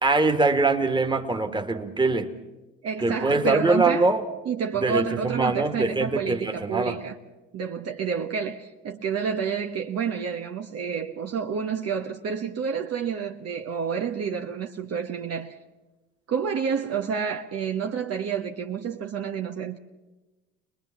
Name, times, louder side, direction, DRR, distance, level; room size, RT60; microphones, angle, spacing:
voice 1, 0.0-2.3 3.0-4.2 4.8-7.0, right 3 dB, 15° right, 2.1 m, -23 dB
voice 2, 2.8-4.1 4.4-7.2 7.5-15.6 16.3-19.8, right 6 dB, 45° right, 1.3 m, -29 dB
24.5 x 20.5 x 6.0 m
supercardioid pair, 75°, 34 cm